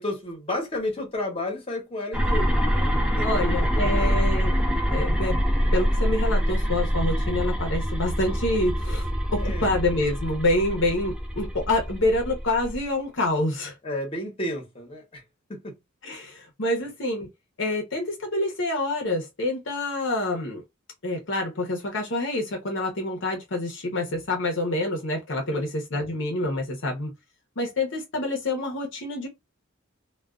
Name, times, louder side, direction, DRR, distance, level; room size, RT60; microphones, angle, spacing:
voice 1, 0.0-2.9 3.2-4.5 9.3-9.7 13.8-15.2 15.5-15.7 25.5-25.7, left 1 dB, 30° left, 1.0 m, -32 dB
sound 1, 2.1-12.8, equal, 5° right, 0.5 m, -25 dB
voice 2, 3.2-4.6 4.9-5.4 5.7-13.8 16.0-17.3 17.6-20.6 21.0-27.1 27.6-29.3, left 2 dB, 65° left, 0.8 m, -27 dB
2.3 x 2.3 x 2.3 m
head